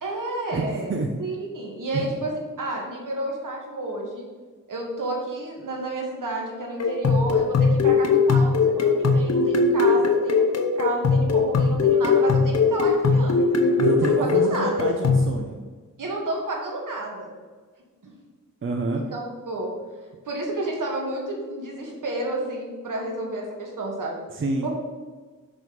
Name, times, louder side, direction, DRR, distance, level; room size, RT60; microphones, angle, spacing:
voice 1, 0.0-0.9 1.2-4.2 4.7-14.2 14.5-14.7 16.0-17.3 18.0-18.2 18.9-19.7 20.3-24.2 24.6-24.7, right 2 dB, 70° right, -1 dB, 2.0 m, -31 dB
voice 2, 0.5-1.1 1.9-2.1 13.7-15.6 18.6-19.1 24.3-24.7, right 2 dB, 40° right, 2 dB, 0.6 m, -27 dB
sound 1, 6.8-15.3, left 4 dB, 50° left, 0.8 m, -20 dB
6.2 x 6.1 x 5.2 m, 1.4 s
wide cardioid pair, 155°, 33 cm